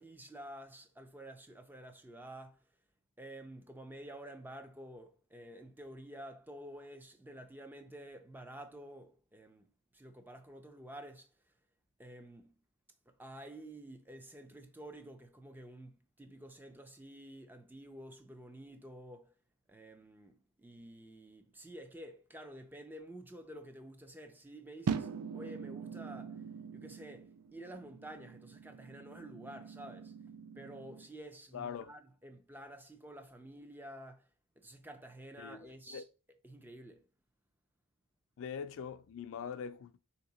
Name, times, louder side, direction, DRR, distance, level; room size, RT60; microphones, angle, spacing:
voice 1, 0.0-2.6 3.2-9.7 9.9-11.3 12.0-12.5 13.1-19.3 19.7-26.4 26.7-30.1 30.6-34.3 34.6-36.0 36.4-37.0, right 1 dB, 10° right, 0.4 m, -50 dB
sound 1, 24.9-31.1, right 6 dB, 85° right, 0.4 m, -42 dB
voice 2, 31.5-31.9 35.4-36.0 38.4-40.0, left 7 dB, 60° left, 0.3 m, -43 dB
3.6 x 2.9 x 3.9 m
head